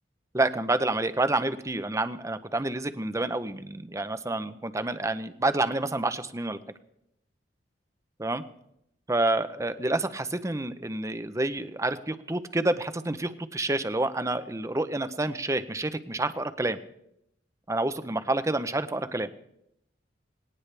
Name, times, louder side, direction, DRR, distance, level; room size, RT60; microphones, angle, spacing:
voice 1, 0.3-6.6 8.2-8.4 9.1-16.8 17.7-19.3, right 2 dB, 15° right, 11 dB, 0.7 m, -28 dB
19.0 x 18.0 x 3.4 m, 0.79 s
head